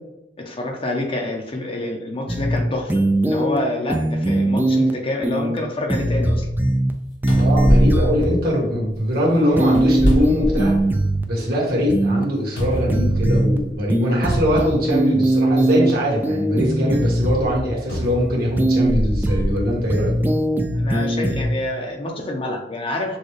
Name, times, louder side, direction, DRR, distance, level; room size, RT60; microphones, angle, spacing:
voice 1, 0.4-2.9 3.2-6.5 20.5-23.2, left 2 dB, 30° left, 2 dB, 0.6 m, -27 dB
sound 1, 2.3-2.6 2.9-3.6 3.9-4.9 5.2-5.6 5.9-6.9 7.2-8.2 9.6-11.2 11.9-12.2 12.9-13.6 13.9-15.9 16.2-17.6 18.6-18.9 19.2-19.6 19.9-21.5, right 1 dB, 10° right, 0.3 m, -20 dB
sound 2, 6.9-7.0 7.3-9.0 9.6-11.1 11.5-11.6 12.6-13.7 14.6-14.7 17.9-19.5 20.2-20.4, equal, 85° left, 1.3 m, -23 dB
voice 2, 7.3-10.8 11.3-20.1, equal, 55° right, -3 dB, 1.6 m, -21 dB
6.3 x 2.3 x 3.2 m, 0.90 s
head